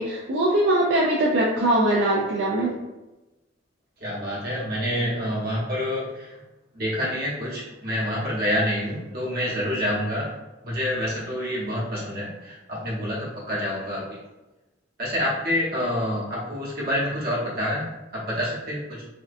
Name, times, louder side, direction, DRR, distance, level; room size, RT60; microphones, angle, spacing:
voice 1, 0.0-2.7, right 1 dB, 75° right, -3 dB, 0.4 m, -21 dB
voice 2, 4.0-6.4 6.7-10.3 10.6-14.2 15.0-19.0, equal, 55° right, -6 dB, 1.1 m, -27 dB
3.5 x 2.2 x 2.5 m, 1.1 s
head